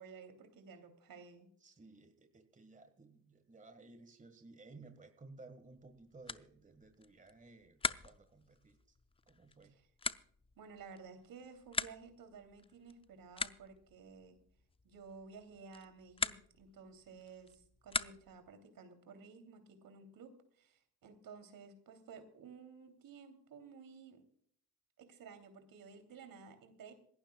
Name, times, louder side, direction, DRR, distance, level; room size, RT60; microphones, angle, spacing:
voice 1, 0.0-1.5 10.6-14.4 14.8-24.2 25.0-26.9, right 5 dB, 55° right, 7 dB, 3.2 m, -54 dB
voice 2, 1.6-9.0 9.3-9.8, right 3 dB, 20° right, 7 dB, 1.7 m, -57 dB
sound 1, 5.7-18.5, left 4 dB, 15° left, 0.5 m, -44 dB
26.5 x 11.5 x 2.3 m, 0.62 s
supercardioid pair, 75°, 40 cm